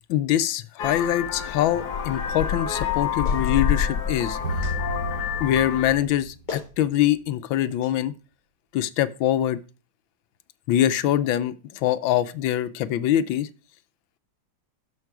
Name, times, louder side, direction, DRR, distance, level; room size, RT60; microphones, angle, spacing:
voice 1, 0.1-4.4 5.4-8.1 8.7-9.6 10.7-13.5, left 12 dB, 90° left, 1.5 m, -24 dB
Vehicle horn car horn honking, 0.8-5.9, left 8 dB, 60° left, 1.4 m, -27 dB
Clapping, 3.2-3.5 4.6-4.8 6.1-6.2 6.5-6.7 7.8-7.9, left 4 dB, 25° left, 2.2 m, -36 dB
sound 1, 4.4-7.0, right 2 dB, 90° right, 2.9 m, -32 dB
12.5 x 5.3 x 4.7 m
omnidirectional pair, 2.1 m